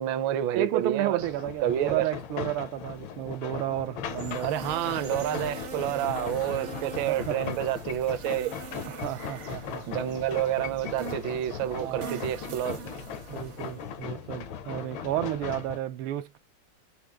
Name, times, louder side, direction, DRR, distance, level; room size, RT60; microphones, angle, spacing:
voice 1, 0.0-1.2 1.6-2.1 4.4-8.5 9.9-12.8, right 11 dB, 75° right, 1.3 m, -29 dB
voice 2, 0.5-4.6 6.8-7.4 8.9-9.9 11.7-12.2 13.3-16.4, right 13 dB, 90° right, 1.5 m, -32 dB
sound 1, 1.2-15.8, left 8 dB, 75° left, 1.4 m, -38 dB
sound 2, 4.0-14.0, right 5 dB, 55° right, 0.8 m, -43 dB
5.0 x 3.0 x 3.3 m
omnidirectional pair, 2.3 m